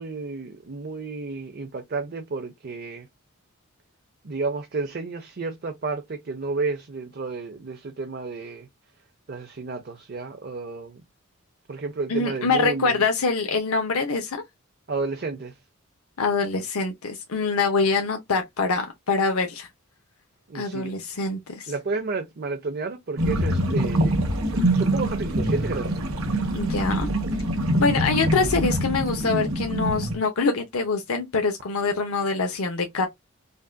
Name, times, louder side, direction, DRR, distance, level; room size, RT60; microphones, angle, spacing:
voice 1, 0.0-3.1 4.2-8.7 9.3-11.0 11.7-13.1 14.9-15.6 20.5-20.9 21.7-24.1 24.7-25.9, right 3 dB, 45° right, 0.6 m, -31 dB
voice 2, 12.1-14.4 16.2-19.7 20.5-21.7 26.5-27.1 27.8-33.1, left 4 dB, 80° left, 0.7 m, -24 dB
sound 1, 23.2-30.2, right 1 dB, 70° right, 1.2 m, -24 dB
5.2 x 2.5 x 2.2 m
head